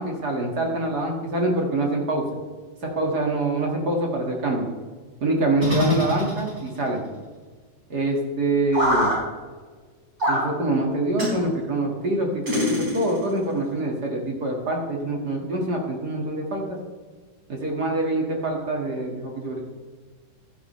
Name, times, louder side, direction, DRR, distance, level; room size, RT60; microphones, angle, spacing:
voice 1, 0.0-2.4 2.8-4.7 5.2-7.0 7.9-9.1 10.3-16.8 17.5-19.6, right 2 dB, 40° right, 0 dB, 1.5 m, -25 dB
sound 1, 5.6-6.8 8.7-9.2 10.2-10.5 11.2-11.4 12.5-13.3, left 1 dB, 20° right, 4.6 m, -24 dB
15.5 x 11.0 x 3.2 m, 1.4 s
omnidirectional pair, 4.2 m